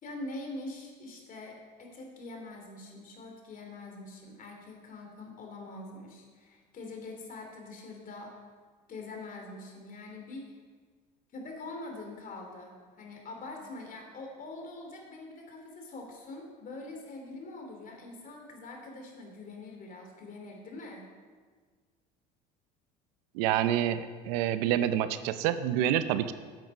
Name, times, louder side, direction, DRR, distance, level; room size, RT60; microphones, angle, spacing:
voice 1, 0.0-8.4 8.9-10.4 11.3-21.1, left 2 dB, 40° left, 1 dB, 2.9 m, -44 dB
voice 2, 23.3-26.3, right 11 dB, 75° right, 12 dB, 0.6 m, -27 dB
9.1 x 8.0 x 5.4 m, 1.5 s
supercardioid pair, 90°, 21 cm